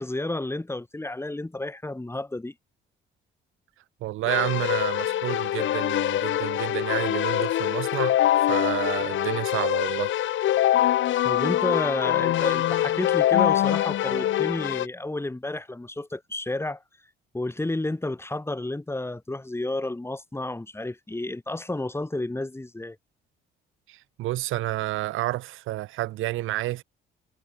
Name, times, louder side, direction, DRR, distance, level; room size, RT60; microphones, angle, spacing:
voice 1, 0.0-2.5 11.2-16.8 17.3-23.0, left 2 dB, 10° left, 7.2 m, -31 dB
voice 2, 4.0-8.2 8.5-10.1 23.9-26.8, right 16 dB, 85° right, 3.2 m, -30 dB
Keyboard (musical), 4.2-14.9, left 12 dB, 75° left, 6.1 m, -24 dB
cardioid pair, 85°, 20 cm